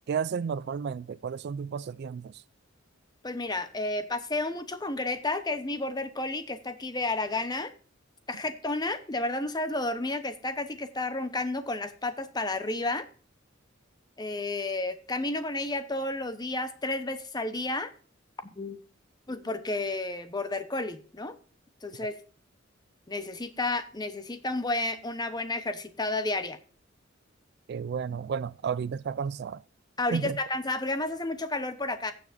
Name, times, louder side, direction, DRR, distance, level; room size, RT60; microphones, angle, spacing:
voice 1, 0.1-2.4 27.7-29.6 30.1-30.4, right 6 dB, 55° right, 0.3 m, -32 dB
voice 2, 3.2-7.7 8.3-13.0 14.2-17.9 18.4-18.8 19.3-21.4 21.8-22.1 23.1-26.6 30.0-32.1, left 2 dB, 20° left, 0.9 m, -31 dB
15.5 x 7.0 x 2.6 m
head